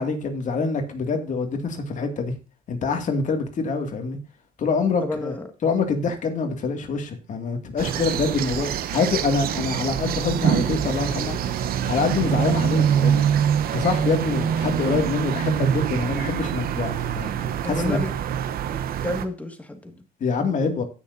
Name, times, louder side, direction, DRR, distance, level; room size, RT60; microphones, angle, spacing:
voice 1, 0.0-2.4 2.7-4.2 4.6-5.4 5.6-11.4 11.8-13.3 13.7-17.3 17.6-18.0 20.2-20.8, left 4 dB, 45° left, 5 dB, 2.2 m, -25 dB
voice 2, 5.0-5.5 11.6-11.8 17.6-18.1 19.0-20.0, left 1 dB, 10° left, 6 dB, 1.9 m, -30 dB
sound 1, 7.8-19.3, right 8 dB, 60° right, 0.9 m, -25 dB
16.5 x 6.4 x 2.7 m, 0.34 s
cardioid pair, 110°, 17 cm